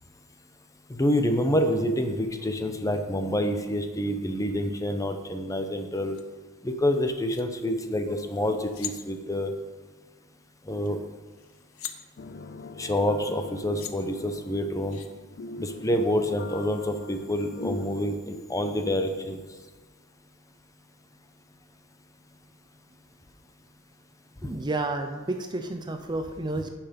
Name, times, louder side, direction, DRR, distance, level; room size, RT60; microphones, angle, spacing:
voice 1, 0.9-6.2 6.6-9.5 10.7-11.0 12.8-15.0 15.6-19.4 24.4-24.5, equal, 15° left, 6 dB, 0.7 m, -27 dB
sound 1, 6.1-6.2 7.1-7.4 8.4-8.5 8.6-9.0 10.9-11.0 11.3-12.0 13.3-13.4 13.7-13.9 14.9-15.1, left 11 dB, 70° left, 0.8 m, -39 dB
sound 2, 12.2-17.9, left 2 dB, 45° left, 0.5 m, -42 dB
voice 2, 24.4-26.7, right 2 dB, 20° right, 6 dB, 0.5 m, -31 dB
10.5 x 5.9 x 5.2 m, 1.3 s
head